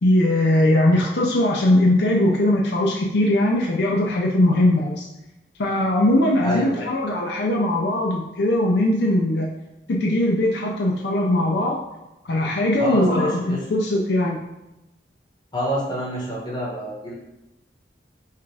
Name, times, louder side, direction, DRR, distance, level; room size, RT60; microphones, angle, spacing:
voice 1, 0.0-5.1 5.6-9.5 9.9-11.8 12.2-14.4, left 1 dB, 70° left, -1 dB, 0.5 m, -20 dB
voice 2, 6.4-6.9 12.8-13.6 15.5-17.1, equal, 25° left, -6 dB, 1.4 m, -28 dB
5.5 x 2.4 x 3.3 m, 0.99 s
head